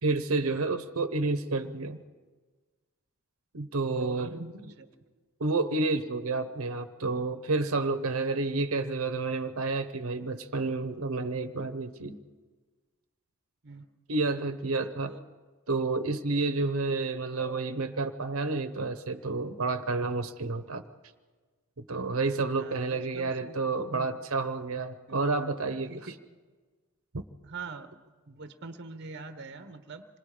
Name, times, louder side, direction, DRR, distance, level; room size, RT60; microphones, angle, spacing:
voice 1, 0.0-2.0 3.5-4.7 5.4-12.2 14.1-15.1 15.7-20.8 21.8-26.1 27.1-27.2, right 3 dB, 80° right, 9 dB, 0.9 m, -30 dB
voice 2, 14.8-15.2 22.6-23.6 23.9-24.1 25.1-25.3 25.9-26.2 27.4-27.9 28.3-30.1, right 4 dB, 50° right, 9 dB, 1.1 m, -44 dB
26.5 x 20.5 x 5.0 m, 1.4 s
head